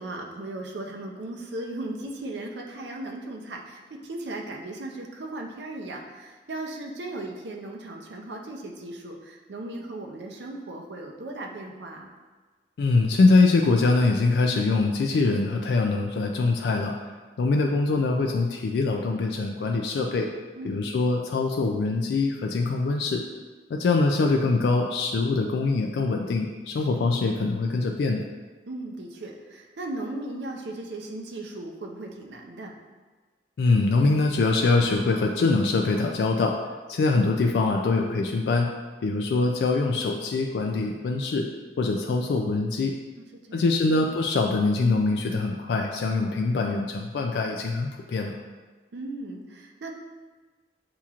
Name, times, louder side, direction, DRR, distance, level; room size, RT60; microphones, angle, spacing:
voice 1, 0.0-12.1 20.6-20.8 26.8-27.0 28.7-32.8 43.2-44.0 48.9-49.9, right 2 dB, 70° right, 1 dB, 0.5 m, -37 dB
voice 2, 12.8-16.9 17.4-20.3 20.6-23.2 23.7-28.2 33.6-36.6 36.9-38.7 39.0-41.5 41.8-42.9 43.5-48.3, left 3 dB, 65° left, 2 dB, 0.3 m, -23 dB
6.9 x 2.9 x 2.4 m, 1.3 s
head